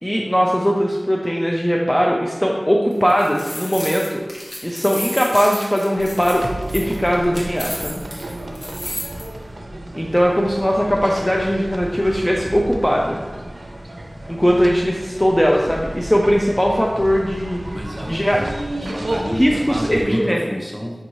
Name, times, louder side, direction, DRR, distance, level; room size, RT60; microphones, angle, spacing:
voice 1, 0.0-4.2 4.6-6.5 6.7-8.0 9.9-13.2 14.3-17.6 18.1-18.4 19.4-20.4, equal, 10° left, -1 dB, 0.4 m, -19 dB
sound 1, 2.9-9.2, equal, 35° left, 1.2 m, -32 dB
sound 2, 6.0-20.0, right 1 dB, 75° right, 0.5 m, -32 dB
voice 2, 17.7-18.4 18.8-20.9, equal, 15° right, -1 dB, 0.8 m, -28 dB
5.4 x 2.6 x 3.0 m, 1.2 s
wide cardioid pair, 50°, 0 cm